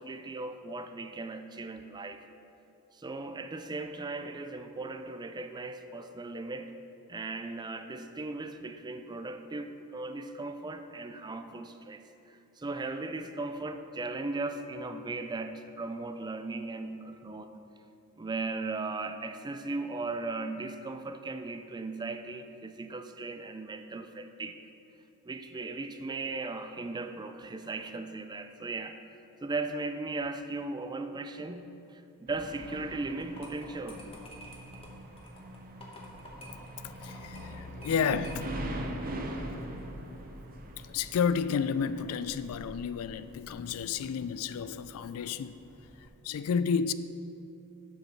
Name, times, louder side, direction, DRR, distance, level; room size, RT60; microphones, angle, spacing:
voice 1, 0.0-2.2 2.9-6.7 7.1-17.5 18.2-24.6 25.2-29.0 29.4-34.1, right 3 dB, 20° right, 8 dB, 0.4 m, -37 dB
sound 1, 32.3-46.1, right 1 dB, 40° right, 0.7 m, -43 dB
sound 2, 33.2-38.8, left 1 dB, 25° left, 1.2 m, -50 dB
voice 2, 36.8-38.5 40.8-45.6 46.2-46.9, left 6 dB, 70° left, 14 dB, 0.3 m, -31 dB
7.4 x 5.2 x 6.4 m, 2.7 s
head